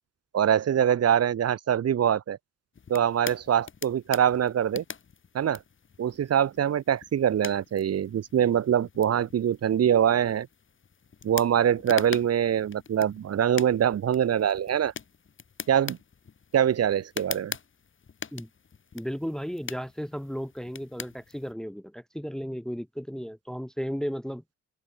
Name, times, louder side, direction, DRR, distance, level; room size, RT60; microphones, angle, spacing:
voice 1, 0.3-2.4 2.9-4.8 5.3-5.6 6.0-10.5 11.2-14.9 15.7-16.0 16.5-17.5, right 9 dB, 55° right, 1.6 m, -24 dB
sound 1, 2.7-21.5, left 6 dB, 40° left, 4.9 m, -43 dB
voice 2, 18.9-24.4, equal, ahead, 1.0 m, -34 dB
cardioid pair, 90°, 30 cm